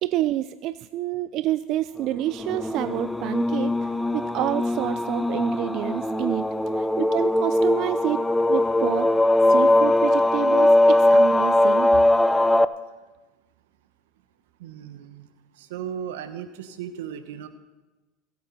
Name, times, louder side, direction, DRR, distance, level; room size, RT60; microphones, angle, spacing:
voice 1, 0.0-6.5 6.7-8.2 8.5-9.1 9.5-11.9, right 14 dB, 55° right, 13 dB, 0.5 m, -28 dB
sound 1, 2.3-12.7, left 1 dB, 5° left, 0.6 m, -20 dB
voice 2, 14.6-15.3 15.5-17.5, right 9 dB, 80° right, 9 dB, 1.3 m, -36 dB
22.5 x 8.5 x 4.3 m, 1.2 s
hypercardioid pair, 95°, 0 cm